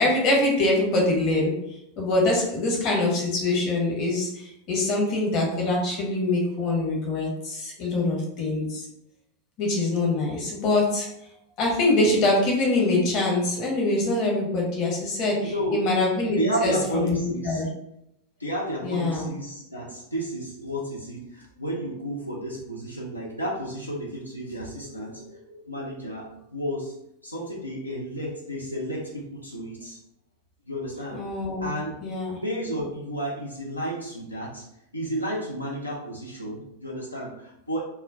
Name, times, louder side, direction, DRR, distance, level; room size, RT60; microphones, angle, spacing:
voice 1, 0.0-1.6 2.0-8.9 9.6-11.1 11.6-17.2 17.4-17.7 18.8-19.3 31.1-31.7 32.0-32.4, left 2 dB, 40° left, -1 dB, 0.8 m, -24 dB
voice 2, 15.4-16.0 16.4-17.6 18.4-26.9 27.2-30.0 30.7-31.2 31.6-32.0 32.4-34.7 34.9-37.8, right 1 dB, 85° left, -4 dB, 0.5 m, -32 dB
2.2 x 2.1 x 3.5 m, 0.79 s
figure-of-eight pair, 90°, 0 cm